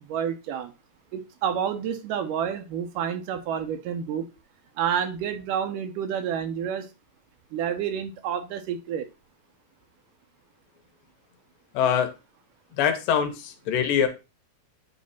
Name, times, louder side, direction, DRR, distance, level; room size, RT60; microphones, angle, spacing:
voice 1, 0.1-0.7 1.1-4.3 4.8-6.9 7.5-9.1, right 8 dB, 75° right, 8 dB, 2.3 m, -29 dB
voice 2, 11.7-12.1 12.8-14.1, left 8 dB, 85° left, 7 dB, 2.7 m, -23 dB
9.4 x 3.3 x 4.2 m, 0.28 s
omnidirectional pair, 3.9 m